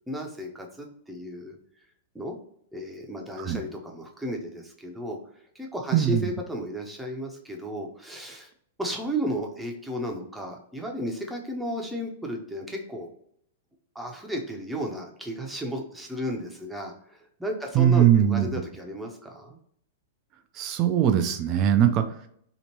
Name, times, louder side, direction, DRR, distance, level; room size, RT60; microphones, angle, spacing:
voice 1, 0.1-1.6 2.1-2.4 2.7-5.2 5.5-8.5 8.8-13.1 13.9-19.6 21.8-22.0, equal, 5° right, 1 dB, 0.7 m, -34 dB
voice 2, 5.9-6.2 17.7-18.5 20.6-22.0, right 10 dB, 35° right, 7 dB, 0.3 m, -20 dB
2.9 x 2.5 x 2.9 m, 0.68 s
figure-of-eight pair, 100°, 0 cm